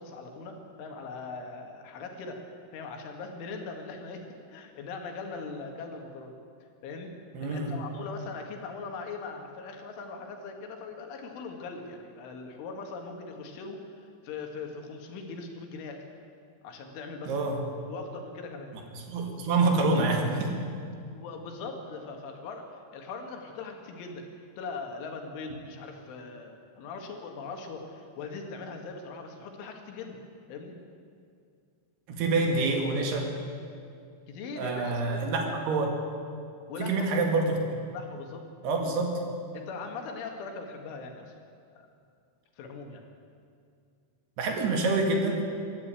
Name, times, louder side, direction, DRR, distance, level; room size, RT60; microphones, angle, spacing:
voice 1, 0.0-2.4 2.7-6.3 6.8-7.1 7.4-13.8 14.2-16.0 16.6-17.6 17.9-18.7 21.1-24.3 24.6-30.2 30.5-30.8 34.3-35.2 36.7-37.2 37.9-38.4 39.5-41.3 41.8-41.9 42.6-43.0, left 4 dB, 85° left, 3 dB, 4.4 m, -40 dB
voice 2, 7.3-7.7 17.3-17.6 18.9-20.6 32.1-33.3 34.6-35.9 36.8-37.8 38.6-39.2 44.4-45.5, right 3 dB, 60° right, 2 dB, 3.9 m, -27 dB
23.5 x 12.0 x 9.0 m, 2.4 s
omnidirectional pair, 5.4 m